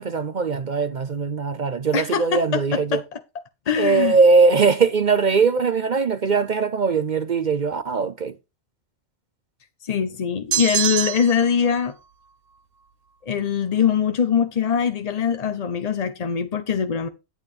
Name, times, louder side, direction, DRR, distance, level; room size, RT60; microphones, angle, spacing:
voice 1, 0.0-3.0 3.8-8.3, right 4 dB, 45° right, 0.6 m, -20 dB
voice 2, 1.9-3.2 3.7-4.2 9.8-11.9 13.2-17.1, left 7 dB, 40° left, 0.6 m, -22 dB
sound 1, 10.5-11.5, right 9 dB, 75° right, 1.1 m, -24 dB
11.0 x 8.8 x 3.2 m
omnidirectional pair, 1.4 m